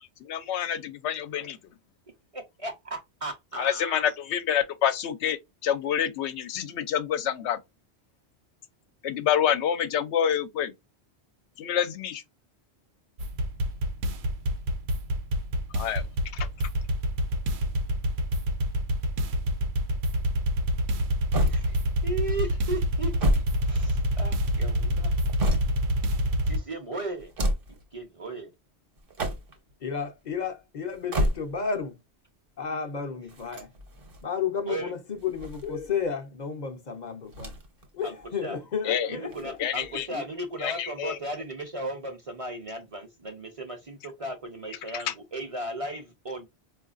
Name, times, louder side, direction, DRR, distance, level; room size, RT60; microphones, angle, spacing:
voice 1, 0.2-1.6 3.6-7.6 9.0-10.7 11.6-12.2 15.7-16.0 38.8-39.1 39.6-40.1 40.6-41.2 44.9-45.1, left 9 dB, 80° left, 0.8 m, -27 dB
voice 2, 2.3-4.0 21.5-23.1 23.7-25.1 26.4-27.3 27.9-28.5 34.7-34.9 38.0-38.2 38.4-38.6 39.1-46.5, right 2 dB, 35° right, 0.7 m, -36 dB
sound 1, 13.2-26.6, equal, 75° right, 0.9 m, -27 dB
sound 2, 21.3-22.1 22.9-24.3 25.0-26.0 27.2-27.8 29.0-29.7 30.9-31.8 33.3-34.2 35.1-36.1 37.3-37.9 38.2-38.3 39.3-40.0, equal, 55° right, 1.1 m, -30 dB
voice 3, 29.8-32.0 32.6-33.7 34.2-37.5 37.9-39.6 40.1-40.3, left 6 dB, 50° left, 0.6 m, -32 dB
4.6 x 2.4 x 2.4 m
omnidirectional pair, 1.1 m